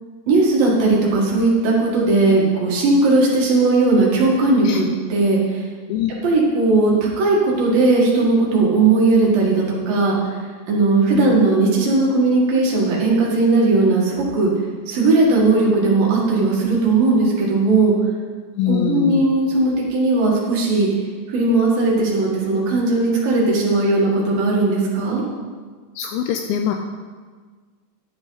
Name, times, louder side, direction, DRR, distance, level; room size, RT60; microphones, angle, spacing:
voice 1, 0.3-4.8 5.1-5.6 6.2-10.2 10.7-14.5 14.9-17.9 18.7-20.9 21.3-25.2, right 3 dB, 55° right, -4 dB, 3.1 m, -17 dB
voice 2, 18.6-19.3 26.0-26.7, left 9 dB, 85° left, 5 dB, 2.6 m, -23 dB
11.5 x 10.5 x 4.0 m, 1.5 s
omnidirectional pair, 5.9 m